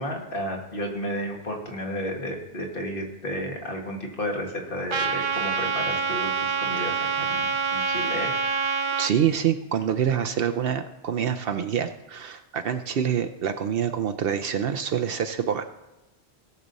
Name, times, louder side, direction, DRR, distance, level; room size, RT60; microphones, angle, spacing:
voice 1, 0.0-8.3, equal, 55° left, 0 dB, 2.1 m, -32 dB
Trumpet, 4.9-9.1, right 5 dB, 35° right, 0.5 m, -26 dB
voice 2, 9.0-15.6, right 8 dB, 65° right, 7 dB, 0.8 m, -26 dB
18.0 x 6.6 x 4.0 m, 1.0 s
omnidirectional pair, 1.1 m